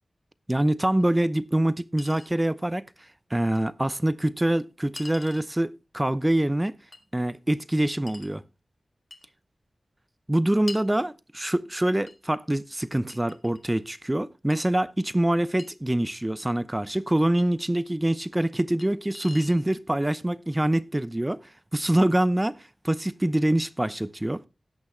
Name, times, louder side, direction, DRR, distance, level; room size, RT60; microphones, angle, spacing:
voice 1, 0.5-2.8 3.3-6.7 7.1-8.4 10.3-21.4 21.7-24.5, right 1 dB, 15° right, 0.6 m, -25 dB
Chink clink, 1.0-1.1 2.0-2.3 3.6-3.7 5.0-5.5 6.9-7.1 8.1-8.4 9.1-9.3 10.7-10.9 12.1-12.2 13.1-13.8 14.5-14.6 15.6-15.7 17.4-17.5 18.8-18.9 19.1-19.6, left 3 dB, 55° left, 1.7 m, -43 dB
17.0 x 6.1 x 3.2 m
wide cardioid pair, 70°, 0 cm